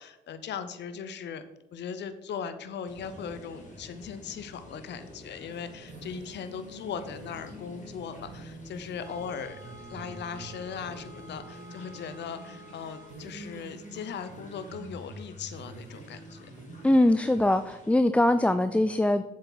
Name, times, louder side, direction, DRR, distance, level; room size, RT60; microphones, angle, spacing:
voice 1, 0.0-1.4 1.7-9.6 9.9-16.5, left 7 dB, 60° left, 11 dB, 0.7 m, -39 dB
sound 1, 2.8-17.9, left 2 dB, 40° left, 2.3 m, -51 dB
sound 2, 3.8-17.0, right 2 dB, 70° right, 2.2 m, -47 dB
sound 3, 9.0-13.2, equal, 15° right, 2.2 m, -50 dB
voice 2, 16.8-19.2, left 1 dB, 5° left, 10 dB, 0.3 m, -22 dB
7.3 x 7.2 x 4.0 m, 0.96 s
cardioid pair, 90°, 20 cm